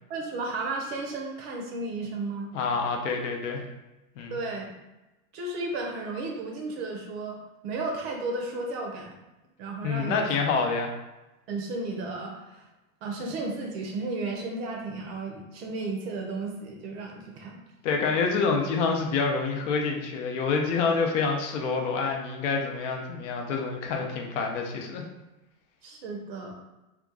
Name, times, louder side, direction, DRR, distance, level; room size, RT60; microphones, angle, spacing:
voice 1, 0.1-2.5 4.3-4.7 5.3-9.1 9.6-10.3 11.5-12.6 13.0-17.6 25.8-26.5, right 3 dB, 45° right, 1 dB, 0.7 m, -33 dB
voice 2, 2.5-3.6 4.2-4.3 9.8-10.9 17.8-25.0, left 4 dB, 55° left, 1 dB, 0.7 m, -27 dB
2.9 x 2.3 x 3.6 m, 1.0 s
supercardioid pair, 155°, 44 cm